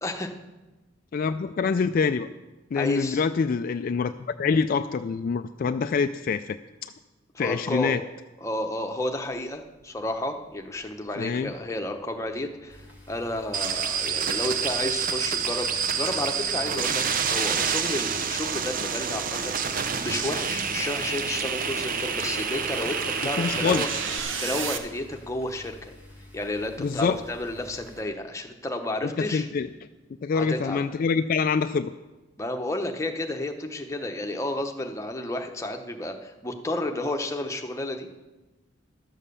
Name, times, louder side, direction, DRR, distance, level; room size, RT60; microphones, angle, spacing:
voice 1, 0.0-0.3 2.8-3.2 7.3-8.0 8.4-23.9 24.4-25.9 26.3-29.5 30.3-30.8 32.4-38.2, left 1 dB, 15° left, 4 dB, 0.9 m, -32 dB
voice 2, 1.1-2.3 2.7-6.9 7.4-8.0 11.2-11.5 23.4-23.9 26.8-27.2 29.0-29.7 30.2-31.9, left 5 dB, 45° left, 9 dB, 0.3 m, -25 dB
sound 1, 10.8-24.8, right 4 dB, 75° right, 1.0 m, -38 dB
sound 2, 12.7-28.0, left 1 dB, 10° right, 2.0 m, -49 dB
sound 3, 13.5-24.2, right 6 dB, 45° right, 0.6 m, -28 dB
12.0 x 7.3 x 6.8 m, 1.1 s
head